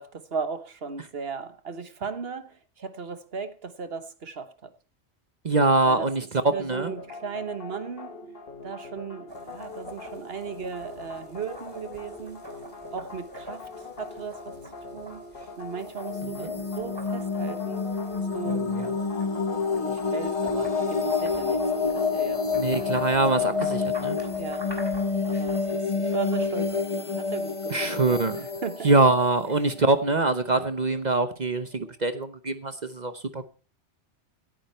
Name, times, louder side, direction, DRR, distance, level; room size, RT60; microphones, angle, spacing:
voice 1, 0.0-4.7 5.8-6.1 6.5-8.1 8.6-12.4 12.9-14.5 14.9-15.2 15.6-17.8 18.2-18.7 19.8-22.9 23.3-23.5 24.2-24.7 25.3-28.9, right 5 dB, 55° right, 1.4 m, -37 dB
voice 2, 5.4-6.9 16.2-16.5 18.4-18.9 22.5-24.2 27.7-28.4 28.8-33.5, right 3 dB, 40° right, 1.0 m, -24 dB
sound 1, 6.5-24.4, left 3 dB, 50° left, 1.4 m, -43 dB
sound 2, 9.3-26.9, right 1 dB, 20° right, 3.1 m, -47 dB
sound 3, 15.8-30.5, left 4 dB, 30° left, 1.0 m, -28 dB
17.0 x 10.5 x 4.4 m
omnidirectional pair, 1.2 m